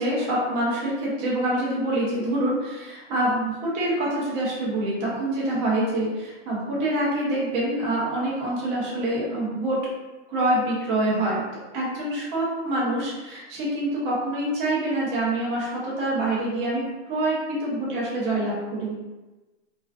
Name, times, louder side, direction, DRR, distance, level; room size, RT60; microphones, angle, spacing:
voice 1, 0.0-9.8 10.3-11.4 11.7-19.0, right 1 dB, 15° right, -5 dB, 0.4 m, -26 dB
2.4 x 2.3 x 2.2 m, 1.1 s
hypercardioid pair, 145°, 37 cm